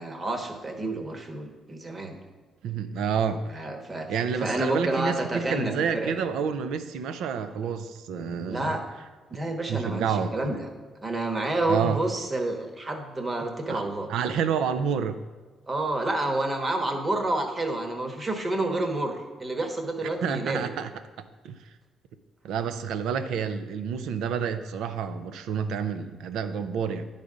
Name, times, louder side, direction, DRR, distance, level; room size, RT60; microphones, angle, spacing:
voice 1, 0.0-2.2 3.5-6.2 8.4-8.8 9.3-10.7 11.0-14.1 15.7-20.7, right 2 dB, 30° right, 4 dB, 1.1 m, -29 dB
voice 2, 2.6-3.7 4.1-8.8 9.7-10.5 11.7-12.0 13.7-13.8 14.1-15.2 20.0-20.9 21.4-21.5 22.4-27.0, right 7 dB, 85° right, 10 dB, 0.5 m, -29 dB
10.0 x 4.1 x 5.0 m, 1.3 s
cardioid pair, 90°, 0 cm